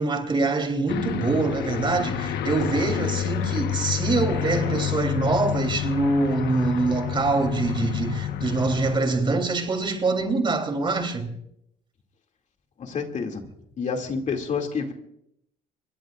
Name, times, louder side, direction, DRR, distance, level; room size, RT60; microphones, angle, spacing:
voice 1, 0.0-11.3, right 3 dB, 30° right, 3.3 m, -24 dB
Aircraft, 0.9-9.0, left 10 dB, 75° left, 1.2 m, -28 dB
voice 2, 12.8-13.4 13.8-14.9, left 5 dB, 45° left, 2.4 m, -28 dB
25.5 x 22.5 x 2.5 m
cardioid pair, 110°, 17 cm